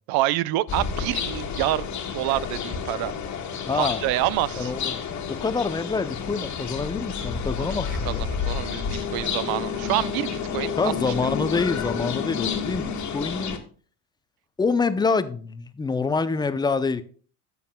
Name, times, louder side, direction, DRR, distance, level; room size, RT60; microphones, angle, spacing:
voice 1, 0.1-3.1 3.7-4.7 7.7-7.8 8.0-11.3, right 16 dB, 55° right, 0.6 m, -27 dB
sound 1, 0.7-13.6, left 6 dB, 40° left, 1.6 m, -30 dB
voice 2, 3.7-4.0 4.6-5.0 5.3-8.3 10.8-13.6 14.6-17.0, left 4 dB, 10° left, 0.5 m, -26 dB
14.0 x 6.9 x 2.2 m
supercardioid pair, 90°, 43 cm